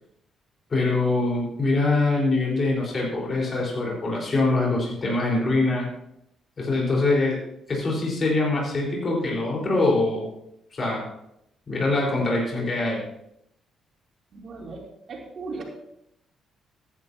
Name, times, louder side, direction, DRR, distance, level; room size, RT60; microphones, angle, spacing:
voice 1, 0.7-5.9 6.6-7.4 7.7-10.3 10.7-11.0 11.7-13.0, left 2 dB, 40° left, -3 dB, 4.6 m, -23 dB
voice 2, 14.3-14.8 15.1-15.6, right 3 dB, 55° right, -1 dB, 3.3 m, -36 dB
14.5 x 10.5 x 2.9 m, 0.78 s
cardioid pair, 90°, 0 cm